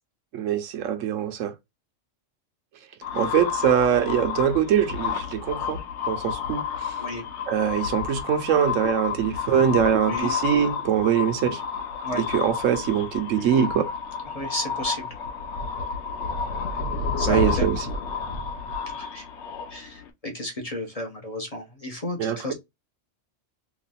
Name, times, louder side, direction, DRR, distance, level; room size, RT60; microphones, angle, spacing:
voice 1, 0.3-1.5 3.1-5.8 6.1-6.9 7.5-11.6 12.2-13.9 17.3-17.9 22.2-22.5, right 9 dB, 80° right, 1.0 m, -23 dB
sound 1, 3.0-20.1, left 6 dB, 65° left, 1.0 m, -30 dB
voice 2, 9.9-10.4 12.0-12.2 14.3-15.1 17.2-17.8 18.9-19.2 19.7-22.5, left 1 dB, 35° left, 0.7 m, -33 dB
3.1 x 2.3 x 4.0 m
omnidirectional pair, 1.3 m